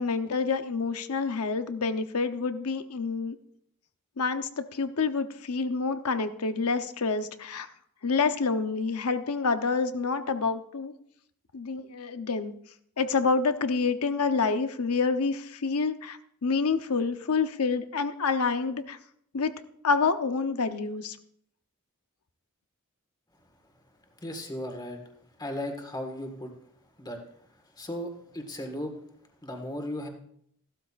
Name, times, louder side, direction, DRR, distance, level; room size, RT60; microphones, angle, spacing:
voice 1, 0.0-3.4 4.2-7.7 8.0-10.9 11.5-12.5 13.0-19.0 19.3-19.5 19.8-21.2, left 4 dB, 75° left, 9 dB, 0.8 m, -28 dB
voice 2, 24.2-25.0 25.4-26.5 27.0-27.2 27.5-28.9 29.4-30.1, left 1 dB, 20° left, 4 dB, 1.6 m, -36 dB
15.0 x 12.5 x 2.5 m, 0.69 s
head